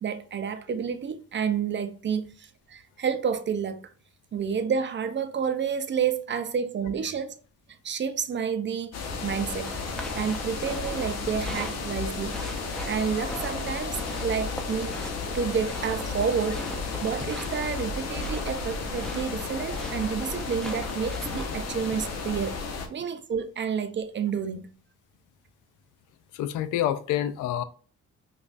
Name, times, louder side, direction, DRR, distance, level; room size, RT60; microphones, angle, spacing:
voice 1, 0.0-3.9 4.3-7.4 7.8-9.7 10.1-12.3 12.9-15.0 15.3-16.7 17.0-22.6 22.9-24.7, right 7 dB, 40° right, 0.6 m, -30 dB
sound 1, 8.9-22.9, left 4 dB, 60° left, 0.9 m, -33 dB
sound 2, 9.6-22.3, right 1 dB, ahead, 0.7 m, -41 dB
voice 2, 26.3-27.6, left 11 dB, 90° left, 0.5 m, -27 dB
5.2 x 2.4 x 2.5 m
cardioid pair, 90°, 30 cm